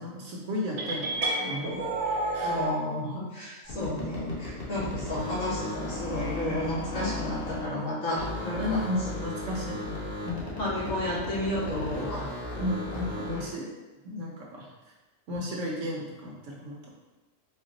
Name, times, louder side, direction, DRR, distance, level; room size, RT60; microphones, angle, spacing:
voice 1, 0.0-2.6 8.5-10.5 12.6-13.7 14.0-14.7 15.3-16.9, left 1 dB, 70° right, -2 dB, 1.0 m, -34 dB
sound 1, 0.8-2.8, right 2 dB, 85° right, 1.3 m, -30 dB
voice 2, 2.4-8.8 10.6-12.2, left 1 dB, 75° left, -9 dB, 1.6 m, -32 dB
sound 2, 3.6-7.9 8.1-13.6, left 2 dB, 35° left, 0.9 m, -36 dB
4.3 x 2.3 x 3.7 m, 1.1 s
omnidirectional pair, 1.4 m